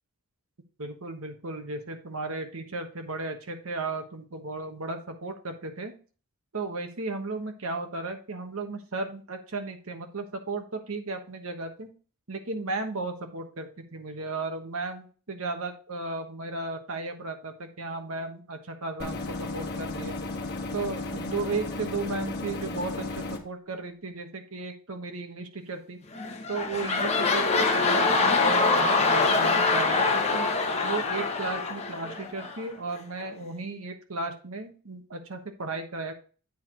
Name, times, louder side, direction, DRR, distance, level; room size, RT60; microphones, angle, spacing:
voice 1, 0.8-5.9 6.5-11.9 12.3-20.2 20.7-26.0 26.5-30.5 30.8-36.1, right 3 dB, 70° right, 6 dB, 1.2 m, -35 dB
sound 1, 19.0-23.4, left 2 dB, 45° left, 1.3 m, -34 dB
sound 2, 26.1-32.7 33.2-33.3, left 3 dB, 30° left, 0.9 m, -24 dB
8.3 x 4.7 x 3.9 m, 0.38 s
head